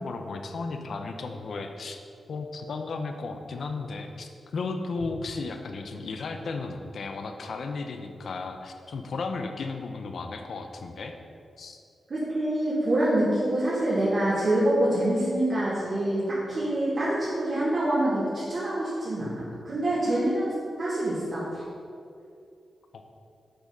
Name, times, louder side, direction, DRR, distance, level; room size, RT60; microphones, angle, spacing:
voice 1, 0.0-2.0 2.3-11.1 11.6-11.8 22.9-23.1, left 3 dB, 70° left, 5 dB, 0.8 m, -34 dB
voice 2, 12.1-21.6, right 1 dB, 50° right, -10 dB, 2.4 m, -26 dB
7.8 x 6.7 x 5.3 m, 2.4 s
wide cardioid pair, 110°, 0 cm